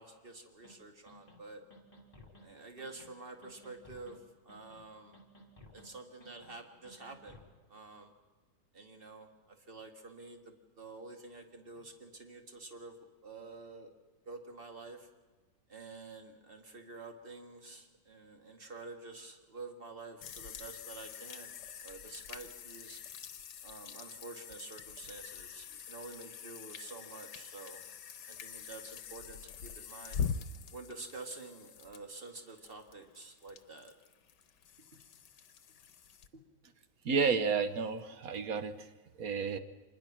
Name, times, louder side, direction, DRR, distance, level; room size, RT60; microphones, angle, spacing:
voice 1, 0.0-1.6 2.4-5.2 5.7-7.4 7.7-8.1 8.7-12.9 13.2-13.9 14.3-15.1 15.7-21.5 21.8-23.0 23.6-27.8 28.3-30.2 30.7-33.9 36.3-36.4, right 3 dB, 30° right, 4 dB, 2.1 m, -49 dB
sound 1, 0.6-0.7 1.1-1.4 1.7-2.5 2.8-3.1 3.4-4.2 4.5-4.9 5.1-5.9 6.2-6.5 6.8-7.5, left 1 dB, 20° left, 2.8 m, -56 dB
sound 2, 20.2-36.3, left 7 dB, 70° left, 1.6 m, -44 dB
voice 2, 37.0-38.7 39.2-39.6, right 5 dB, 55° right, 10 dB, 1.3 m, -31 dB
25.5 x 20.5 x 6.1 m, 1.3 s
omnidirectional pair, 2.0 m